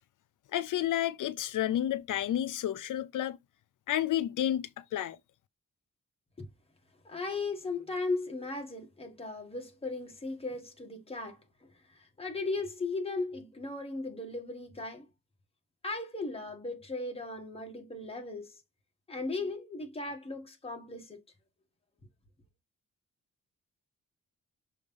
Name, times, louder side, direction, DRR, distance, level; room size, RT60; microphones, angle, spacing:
voice 1, 0.5-3.4 3.9-5.2, left 12 dB, 80° left, 0.5 m, -31 dB
voice 2, 7.0-11.4 11.9-15.1 15.8-18.6 19.1-21.2, left 3 dB, 20° left, 1.6 m, -37 dB
6.4 x 3.2 x 5.4 m
wide cardioid pair, 180°, 31 cm